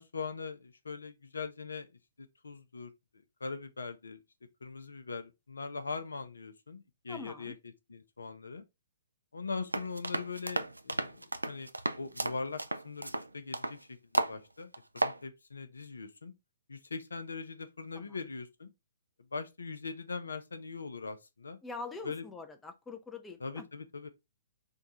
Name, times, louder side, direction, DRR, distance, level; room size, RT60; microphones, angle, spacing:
voice 1, 0.0-1.9 2.2-2.9 3.4-4.2 4.6-7.5 7.9-8.6 9.3-11.7 12.0-16.3 16.7-18.7 19.3-21.6 22.0-22.2 23.4-24.1, left 4 dB, 75° left, 0.6 m, -41 dB
voice 2, 7.1-7.6 17.9-18.2 21.6-23.7, left 3 dB, 10° left, 0.5 m, -44 dB
sound 1, 9.7-13.8 14.1-14.4 14.7-15.2, right 2 dB, 90° right, 0.4 m, -33 dB
3.6 x 2.3 x 4.1 m
figure-of-eight pair, 120°, 0 cm